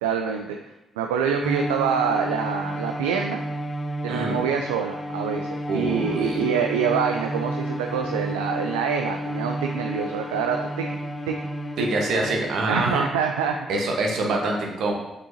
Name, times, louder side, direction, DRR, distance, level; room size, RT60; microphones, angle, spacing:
voice 1, 0.0-0.6 1.0-3.4 4.0-11.0 11.3-11.5 11.8-11.9 12.7-13.9, right 7 dB, 80° right, 3 dB, 0.3 m, -26 dB
Bowed string instrument, 1.4-12.6, equal, 20° left, 0.9 m, -31 dB
voice 2, 4.1-4.4 5.7-6.4 11.8-13.0 13.7-14.9, right 2 dB, 65° right, 0 dB, 1.2 m, -25 dB
6.9 x 6.9 x 2.8 m, 0.94 s
hypercardioid pair, 40°, 0 cm